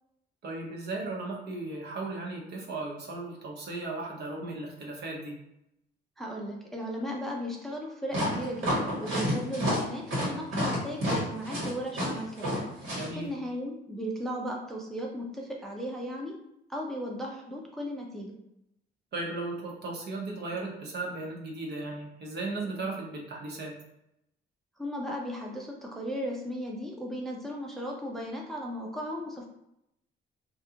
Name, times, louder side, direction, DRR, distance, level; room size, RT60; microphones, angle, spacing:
voice 1, 0.4-5.3 12.9-13.3 19.1-23.8, right 2 dB, 55° right, -1 dB, 0.8 m, -36 dB
voice 2, 6.2-12.7 13.2-16.4 16.7-18.3 24.8-29.5, equal, ahead, -1 dB, 0.5 m, -36 dB
sound 1, 8.1-13.1, equal, 80° right, 1.5 m, -29 dB
2.4 x 2.3 x 2.8 m, 0.81 s
cardioid pair, 90°, 20 cm